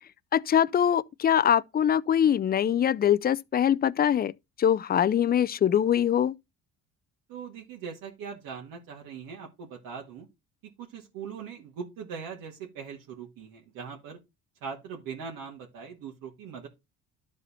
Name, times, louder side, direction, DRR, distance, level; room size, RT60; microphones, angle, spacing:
voice 1, 0.3-4.3 4.6-6.3, left 9 dB, 30° left, 0.4 m, -23 dB
voice 2, 7.3-10.3 10.8-14.2 14.6-16.7, right 6 dB, 75° right, 2.0 m, -41 dB
12.0 x 4.2 x 4.2 m
cardioid pair, 100°, 35 cm